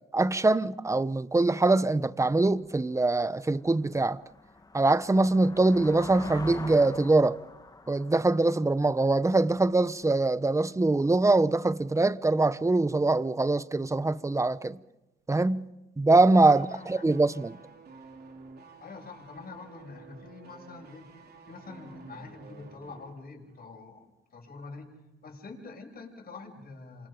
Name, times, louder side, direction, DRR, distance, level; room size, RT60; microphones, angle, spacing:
voice 1, 0.1-4.2 4.7-7.4 7.9-14.8 15.3-15.7 16.0-17.6, right 2 dB, 15° right, 1.0 m, -23 dB
sound 1, 2.6-2.7 3.2-9.8, left 3 dB, 20° left, 1.6 m, -45 dB
voice 2, 16.5-17.0 18.8-21.1 21.5-24.1 24.3-24.9 25.2-27.1, left 3 dB, 50° left, 7.4 m, -45 dB
sound 2, 16.5-23.2 23.5-23.6, right 4 dB, 55° right, 3.3 m, -51 dB
28.5 x 25.0 x 5.3 m
cardioid pair, 90°, 20 cm